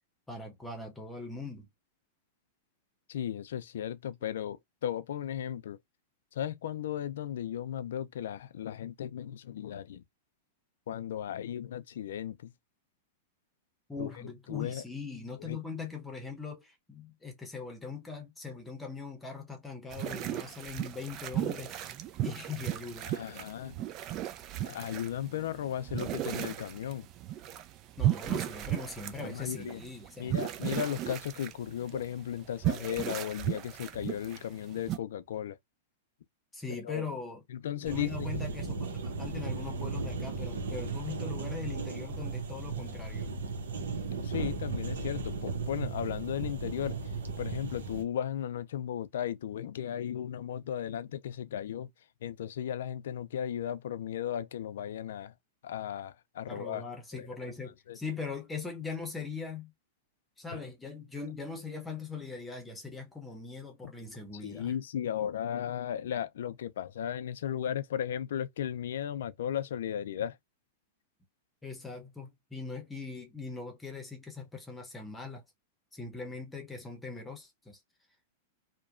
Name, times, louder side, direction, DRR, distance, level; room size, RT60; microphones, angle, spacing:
voice 1, 0.3-1.7 13.9-21.8 22.2-23.2 28.0-30.3 36.5-37.4 37.8-43.3 56.5-59.7 60.4-64.7 71.6-75.4 75.9-77.8, left 4 dB, 10° left, 0.8 m, -41 dB
voice 2, 3.1-5.8 6.3-10.0 10.9-12.5 14.0-14.1 14.5-14.8 15.4-15.6 23.1-23.8 24.6-27.1 29.2-29.8 30.2-35.6 36.7-37.0 37.5-38.3 44.2-47.1 47.4-51.9 52.2-55.3 55.6-56.8 57.2-57.3 57.9-58.0 64.3-70.4, left 10 dB, 75° left, 0.4 m, -35 dB
sound 1, 19.9-35.0, right 13 dB, 40° right, 0.4 m, -35 dB
sound 2, 37.8-48.0, right 4 dB, 85° right, 0.8 m, -36 dB
2.8 x 2.2 x 2.4 m
hypercardioid pair, 120°, 0 cm